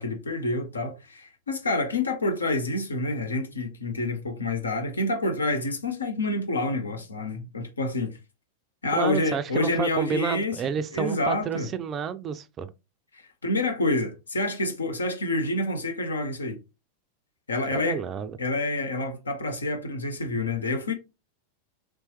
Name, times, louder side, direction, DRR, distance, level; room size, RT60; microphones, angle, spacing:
voice 1, 0.0-8.2 8.8-10.6 10.9-11.7 13.1-16.6 17.5-18.0 18.4-20.9, left 2 dB, 75° left, 0.7 m, -28 dB
voice 2, 9.0-12.7 17.7-18.3, right 7 dB, 25° right, 0.3 m, -30 dB
3.2 x 3.0 x 3.0 m
figure-of-eight pair, 90°, 0 cm